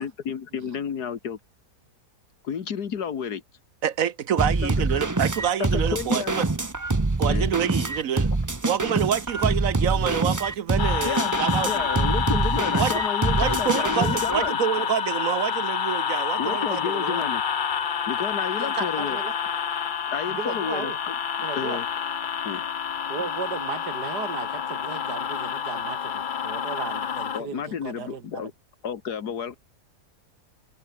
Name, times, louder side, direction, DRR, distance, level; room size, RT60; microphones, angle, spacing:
voice 1, 0.0-1.4 2.4-3.4 4.6-4.9 5.6-6.3 7.3-7.5 11.0-11.3 11.6-14.6 16.4-17.4 18.1-19.2 20.1-21.9 22.4-22.6 27.3-28.5 28.8-29.5, left 7 dB, 75° left, 2.1 m, -31 dB
voice 2, 3.8-6.5 7.2-8.3 8.6-11.9 12.7-12.9 13.4-17.2, right 9 dB, 60° right, 1.2 m, -27 dB
sound 1, 4.4-14.5, right 3 dB, 20° right, 0.6 m, -25 dB
sound 2, 10.8-27.4, left 7 dB, 45° left, 0.7 m, -28 dB
voice 3, 18.6-19.3 20.3-21.0 21.4-21.8 23.1-28.4, right 6 dB, 85° right, 2.4 m, -35 dB
omnidirectional pair, 1.7 m